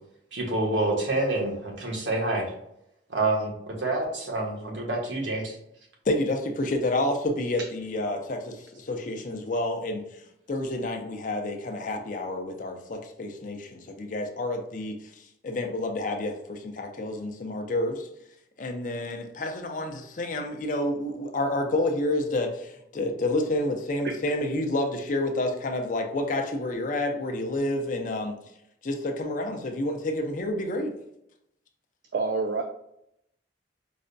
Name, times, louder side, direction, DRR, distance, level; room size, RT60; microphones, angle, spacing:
voice 1, 0.3-2.5 3.1-5.6, right 2 dB, 85° right, -1 dB, 1.0 m, -27 dB
voice 2, 6.1-10.0 10.5-14.9 15.4-18.1 18.6-28.3 28.8-30.9, left 1 dB, 45° left, 4 dB, 0.5 m, -29 dB
voice 3, 32.1-32.6, right 4 dB, 60° right, 4 dB, 0.3 m, -27 dB
4.8 x 2.2 x 2.6 m, 0.79 s
head